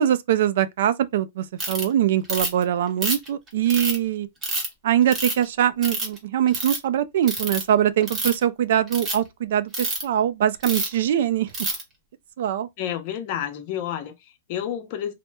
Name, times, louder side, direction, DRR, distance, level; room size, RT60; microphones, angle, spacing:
voice 1, 0.0-4.3 4.8-11.5 12.4-12.7, right 10 dB, 65° right, 0.3 m, -22 dB
Ratchet pawl, 1.6-1.8 2.3-2.6 3.0-4.0 4.4-4.7 5.1-5.4 5.8-6.2 6.5-6.8 7.3-7.6 8.0-8.4 8.9-9.1 9.7-10.0 10.6-10.9 11.5-11.8, right 2 dB, 20° right, 0.9 m, -27 dB
voice 2, 12.8-15.1, left 10 dB, 45° left, 0.7 m, -30 dB
2.9 x 2.0 x 2.2 m
supercardioid pair, 155°, 0 cm